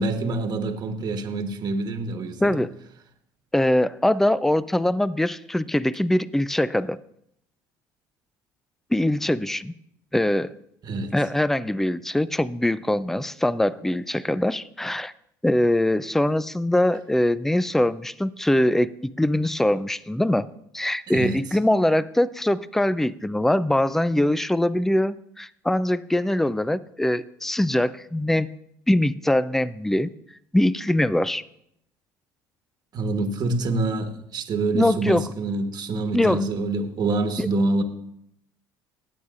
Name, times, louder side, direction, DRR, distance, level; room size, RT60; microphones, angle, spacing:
voice 1, 0.0-2.6 10.8-11.1 21.1-21.4 32.9-37.8, right 2 dB, 45° right, 1.3 m, -26 dB
voice 2, 2.4-2.7 3.5-7.0 8.9-9.7 10.1-10.5 11.1-15.1 15.4-20.5 20.7-28.5 28.9-30.1 30.5-31.4 34.7-35.2 36.1-36.4 37.4-37.5, left 1 dB, 5° left, 0.4 m, -22 dB
19.0 x 8.1 x 2.5 m
supercardioid pair, 80°, 9 cm